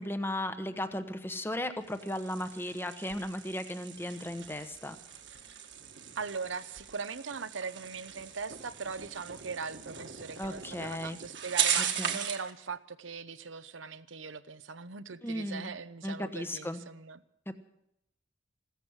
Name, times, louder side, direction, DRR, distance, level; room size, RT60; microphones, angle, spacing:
voice 1, 0.0-5.0 10.4-11.2 12.0-12.2 15.2-15.7 16.0-16.8 17.5-17.6, left 1 dB, 10° left, 1.0 m, -36 dB
sound 1, 1.8-12.5, right 9 dB, 65° right, 1.7 m, -37 dB
voice 2, 6.2-17.2, right 5 dB, 85° right, 0.9 m, -40 dB
16.0 x 14.0 x 6.3 m
head